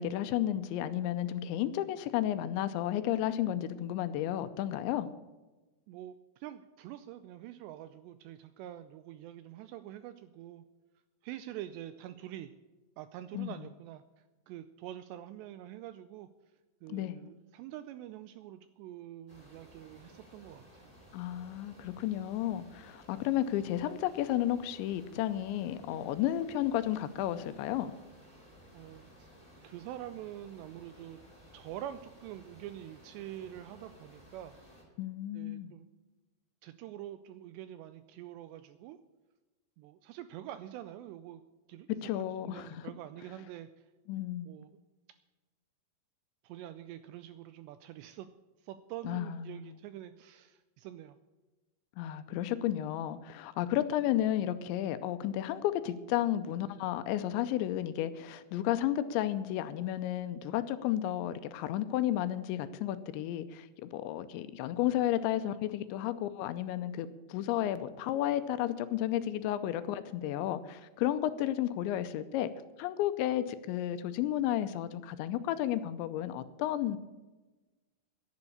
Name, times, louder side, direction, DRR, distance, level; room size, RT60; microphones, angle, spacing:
voice 1, 0.0-5.1 13.3-13.5 16.9-17.2 21.1-27.9 35.0-35.7 42.0-42.8 44.1-44.5 49.0-49.6 52.0-72.5 72.8-77.0, left 12 dB, 85° left, 11 dB, 2.8 m, -32 dB
voice 2, 5.9-10.6 11.2-12.5 13.0-16.3 16.8-20.9 28.3-28.5 28.7-29.3 29.6-31.2 31.5-34.6 35.3-35.9 36.6-39.0 39.8-41.4 41.7-43.9 44.5-44.7 46.4-48.3 48.6-51.2, right 12 dB, 85° right, 12 dB, 2.5 m, -46 dB
sound 1, 19.3-34.8, equal, 10° right, 2.8 m, -57 dB
11.0 x 10.5 x 8.5 m, 1.2 s
omnidirectional pair, 5.4 m